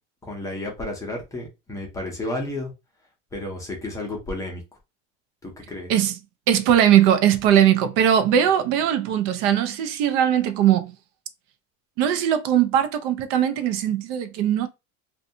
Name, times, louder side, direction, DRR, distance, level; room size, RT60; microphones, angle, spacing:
voice 1, 0.2-2.7 3.3-4.6 5.4-5.9, left 2 dB, 10° left, 0.5 m, -32 dB
voice 2, 6.5-10.9 12.0-14.7, right 10 dB, 80° right, 0.6 m, -20 dB
2.6 x 2.3 x 2.6 m
cardioid pair, 170°, 35 cm